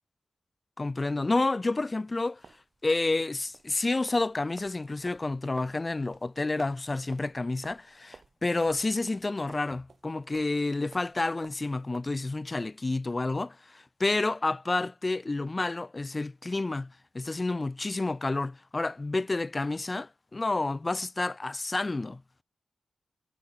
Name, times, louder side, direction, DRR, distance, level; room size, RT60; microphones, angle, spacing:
voice 1, 0.8-2.4 2.8-22.2, left 2 dB, 30° left, 0.8 m, -30 dB
sound 1, 2.3-12.0, right 4 dB, 55° right, 8.0 m, -53 dB
cardioid pair, 80°, 0 cm